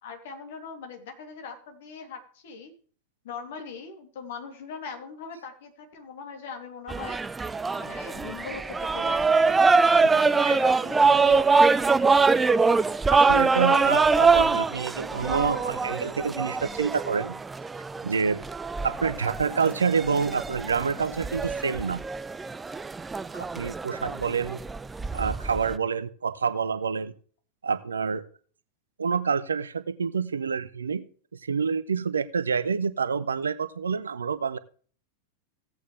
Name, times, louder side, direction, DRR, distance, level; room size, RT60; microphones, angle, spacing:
voice 1, 0.0-2.7 3.2-7.2 7.7-9.7 10.1-11.9, left 5 dB, 55° left, 4 dB, 2.9 m, -41 dB
sound 1, 6.9-25.7, right 4 dB, 10° right, 0.4 m, -24 dB
voice 2, 10.1-10.6 13.1-17.3 18.0-18.4 18.8-22.0 23.3-24.6 25.1-27.1 27.6-28.3 29.0-31.0 31.4-34.6, right 5 dB, 70° right, 14 dB, 0.7 m, -27 dB
16.0 x 8.5 x 3.3 m, 0.43 s
figure-of-eight pair, 90°, 0 cm